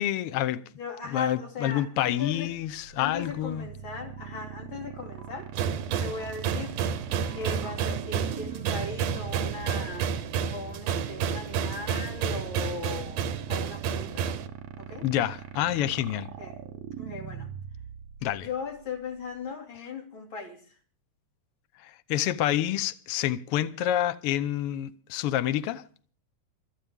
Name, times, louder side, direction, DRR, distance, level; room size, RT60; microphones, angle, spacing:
voice 1, 0.0-0.6 1.1-3.7 15.0-16.3 18.2-18.5 21.8-25.8, left 12 dB, 90° left, 1.2 m, -28 dB
voice 2, 0.8-2.5 3.0-5.5 6.0-6.8 7.3-10.1 10.5-14.3 14.8-15.1 16.3-16.6 17.0-17.5 18.3-20.6, left 4 dB, 40° left, 3.3 m, -38 dB
sound 1, 2.2-2.3 3.2-3.3 4.2-4.3 5.2-5.3 6.2-6.3 7.2-7.7, right 1 dB, 10° left, 1.8 m, -53 dB
sound 2, 2.4-19.5, right 9 dB, 65° right, 1.8 m, -42 dB
sound 3, 5.5-14.5, right 7 dB, 85° right, 2.5 m, -30 dB
27.0 x 9.4 x 3.6 m
omnidirectional pair, 3.5 m